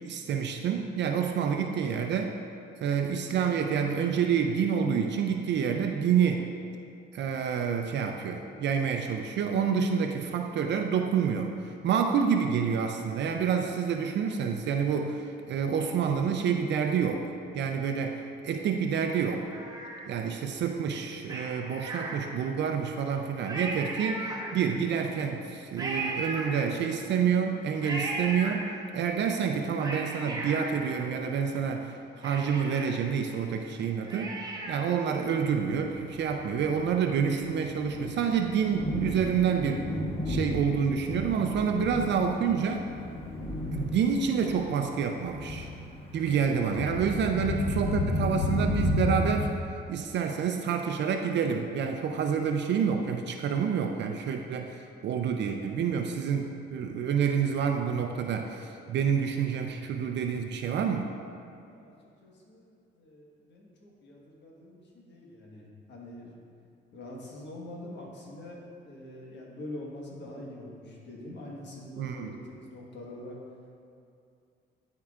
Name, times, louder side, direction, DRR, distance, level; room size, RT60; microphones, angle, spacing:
voice 1, 0.1-2.3 2.8-6.4 7.1-17.3 17.5-19.5 20.1-34.3 34.7-39.9 40.3-42.9 43.7-45.7 46.1-49.5 49.9-61.1 72.0-72.4, right 7 dB, 60° right, 4 dB, 0.5 m, -28 dB
Cat, 18.9-20.4 21.2-22.7 23.1-23.2 23.4-24.9 25.8-27.1 27.8-29.1 29.6-31.6 31.9-32.0 32.2-35.0 35.4-35.5, right 2 dB, 20° right, 1.0 m, -37 dB
Thunder, 35.8-49.4, left 1 dB, 25° left, 1.1 m, -33 dB
voice 2, 62.2-62.7 62.9-66.3 66.9-68.6 68.9-73.4, left 1 dB, 65° left, -3 dB, 1.4 m, -44 dB
11.5 x 4.6 x 2.4 m, 2.5 s
cardioid pair, 90°, 20 cm